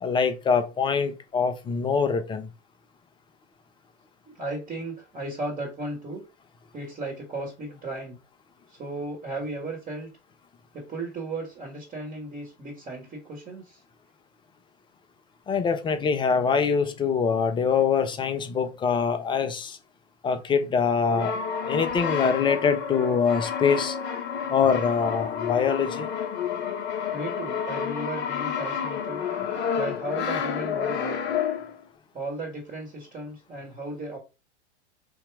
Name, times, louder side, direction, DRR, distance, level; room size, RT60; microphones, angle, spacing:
voice 1, 0.0-2.5 15.5-19.8 20.2-21.3 21.7-24.0 24.5-26.1, left 6 dB, 15° left, 0.5 m, -24 dB
voice 2, 4.3-6.2 6.7-8.2 8.8-10.1 10.7-13.8 27.1-29.2 29.7-31.2 32.1-34.2, right 2 dB, 25° right, 1.8 m, -35 dB
Brass instrument, 21.0-31.8, left 7 dB, 30° left, 0.9 m, -30 dB
3.6 x 2.8 x 4.7 m
figure-of-eight pair, 100°, 35 cm